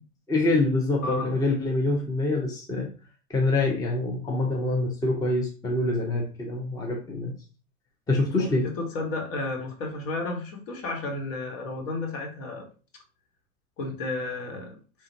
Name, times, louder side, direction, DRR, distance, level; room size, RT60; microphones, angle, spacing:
voice 1, 0.3-2.9 3.3-7.3 8.1-8.7, left 2 dB, 10° left, 0.6 m, -25 dB
voice 2, 1.0-1.4 8.3-12.7 13.8-14.8, left 2 dB, 60° left, 1.3 m, -32 dB
3.3 x 2.4 x 2.6 m
hypercardioid pair, 95°, 45 cm